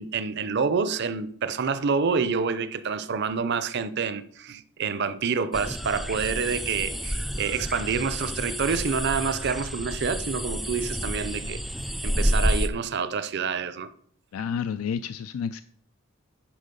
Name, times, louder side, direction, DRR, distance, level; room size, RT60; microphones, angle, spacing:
voice 1, 0.0-11.6 12.0-13.9, right 5 dB, 55° right, 0.5 m, -27 dB
sound 1, 5.5-12.7, equal, ahead, 0.3 m, -29 dB
voice 2, 14.3-15.6, left 7 dB, 85° left, 0.4 m, -30 dB
10.5 x 4.9 x 5.3 m
head